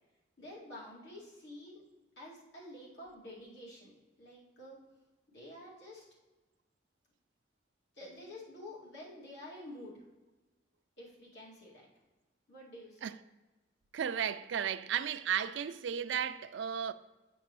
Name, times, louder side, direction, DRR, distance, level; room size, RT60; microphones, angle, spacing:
voice 1, 0.4-1.8 2.2-3.9 4.2-4.8 5.3-6.0 7.9-10.0 11.0-11.8 12.5-13.0, left 1 dB, 70° left, 2.4 m, -49 dB
voice 2, 13.9-16.9, right 8 dB, 85° right, 0.4 m, -34 dB
7.7 x 5.9 x 3.1 m
head